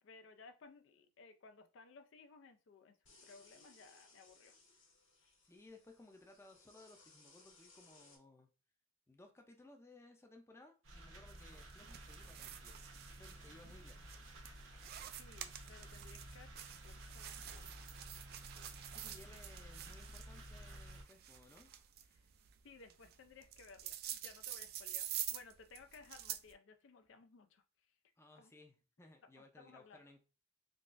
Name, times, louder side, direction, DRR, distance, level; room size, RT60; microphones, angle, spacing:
voice 1, 0.0-4.6 15.2-18.0 22.1-22.3 22.6-27.9 28.4-28.5 29.2-30.0, left 4 dB, 70° left, 0.4 m, -60 dB
sound 1, 3.0-8.2, left 3 dB, 85° left, 1.5 m, -65 dB
voice 2, 5.4-8.5 9.1-12.8 13.1-14.1 18.9-21.7 28.2-30.2, left 2 dB, 15° left, 0.5 m, -61 dB
sound 2, 10.8-21.0, right 1 dB, 85° right, 1.0 m, -53 dB
sound 3, 11.3-26.5, right 11 dB, 50° right, 0.3 m, -48 dB
3.8 x 2.4 x 2.4 m
head